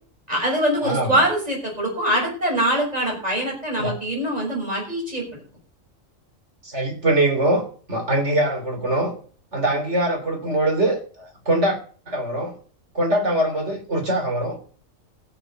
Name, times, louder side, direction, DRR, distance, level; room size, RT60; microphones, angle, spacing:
voice 1, 0.3-5.2, right 1 dB, 30° right, -1 dB, 6.6 m, -23 dB
voice 2, 0.8-1.2 3.8-4.0 6.6-9.1 9.5-11.8 12.1-12.5 12.9-14.6, right 1 dB, 60° right, 2 dB, 3.8 m, -23 dB
15.5 x 7.2 x 6.4 m, 0.43 s
omnidirectional pair, 1.4 m